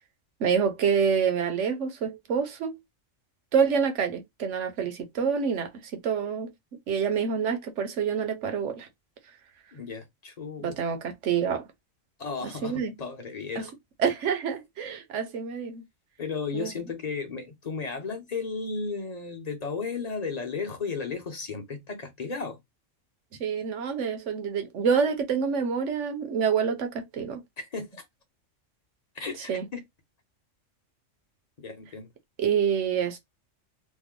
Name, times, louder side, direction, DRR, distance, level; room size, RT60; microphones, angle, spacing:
voice 1, 0.4-2.8 3.5-6.5 6.9-8.9 10.6-11.6 12.6-12.9 13.6-13.7 14.0-15.8 16.5-16.7 23.4-27.4 29.5-29.6 32.4-33.2, right 6 dB, 75° right, 1.1 m, -27 dB
voice 2, 9.7-10.8 12.2-13.7 16.2-22.6 27.6-28.0 29.1-29.8 31.6-32.1, left 4 dB, 35° left, 0.9 m, -34 dB
3.2 x 2.1 x 3.6 m
omnidirectional pair, 1.3 m